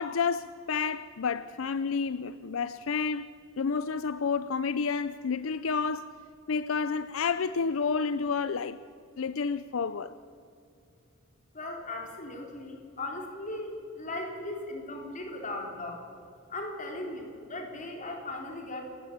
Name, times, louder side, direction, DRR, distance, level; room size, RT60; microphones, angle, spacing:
voice 1, 0.0-3.3 3.6-6.1 6.5-8.8 9.2-10.2, left 5 dB, 75° left, 0.5 m, -30 dB
voice 2, 11.5-16.0 16.5-18.8, left 2 dB, 35° left, 3.8 m, -38 dB
27.5 x 14.5 x 8.6 m
head